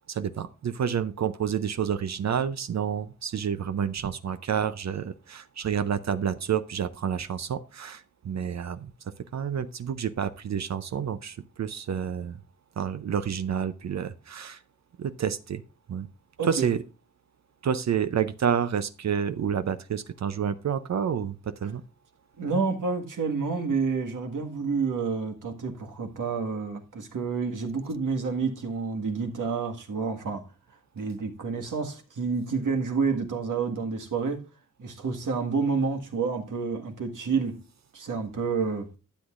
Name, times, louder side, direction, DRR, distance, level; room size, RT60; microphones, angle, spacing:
voice 1, 0.1-8.9 9.2-12.4 12.8-14.6 15.0-15.6 15.9-16.1 16.4-16.8 17.6-21.8, right 7 dB, 60° right, 0.6 m, -29 dB
voice 2, 16.4-16.7 22.4-30.5 30.9-34.4 34.8-37.6 37.9-38.9, right 5 dB, 75° right, 1.7 m, -29 dB
12.0 x 8.0 x 2.4 m
cardioid pair, 75°, 31 cm